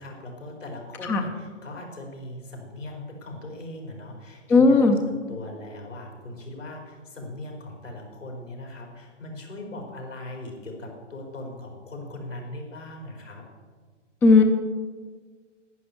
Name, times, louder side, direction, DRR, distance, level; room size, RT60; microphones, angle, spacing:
voice 1, 0.0-4.9 5.3-13.4, left 1 dB, 85° left, 1 dB, 4.3 m, -39 dB
voice 2, 4.5-5.0 14.2-14.4, left 3 dB, 5° left, 5 dB, 0.4 m, -16 dB
11.0 x 10.0 x 6.9 m, 1.5 s
figure-of-eight pair, 120°, 37 cm